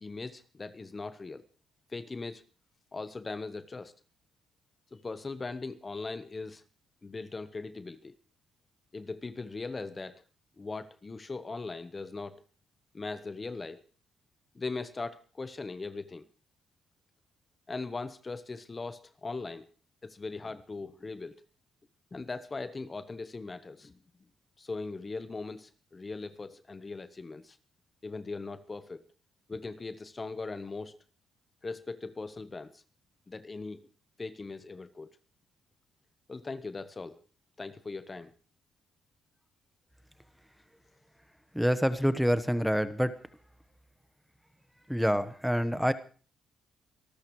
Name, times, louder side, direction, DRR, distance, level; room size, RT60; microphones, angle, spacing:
voice 1, 0.0-1.4 1.9-2.4 2.9-3.9 4.9-6.6 7.0-8.2 8.9-10.2 10.6-12.4 12.9-13.8 14.5-16.2 17.7-19.7 20.0-21.4 22.1-23.9 24.6-27.6 28.0-29.0 29.5-31.0 31.6-32.8 33.3-33.9 34.2-35.1 36.3-37.2 37.6-38.3, left 3 dB, 25° left, 12 dB, 1.1 m, -39 dB
voice 2, 41.5-43.2 44.9-45.9, equal, ahead, 12 dB, 1.2 m, -27 dB
25.5 x 13.0 x 3.2 m, 0.39 s
cardioid pair, 90°, 0 cm